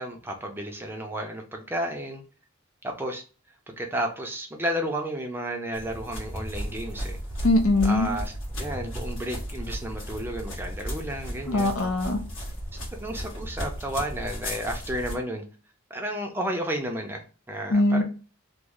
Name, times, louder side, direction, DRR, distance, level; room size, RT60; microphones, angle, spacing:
voice 1, 0.0-2.2 2.8-3.2 3.7-7.2 7.8-8.3 8.6-11.8 13.0-15.4 15.9-18.0, equal, 10° right, 3 dB, 0.4 m, -32 dB
sound 1, 5.7-15.2, equal, 70° left, 1.5 m, -35 dB
voice 2, 7.4-8.1 11.5-12.2 17.7-18.0, left 2 dB, 85° left, 6 dB, 0.6 m, -21 dB
3.0 x 2.0 x 3.6 m, 0.36 s
head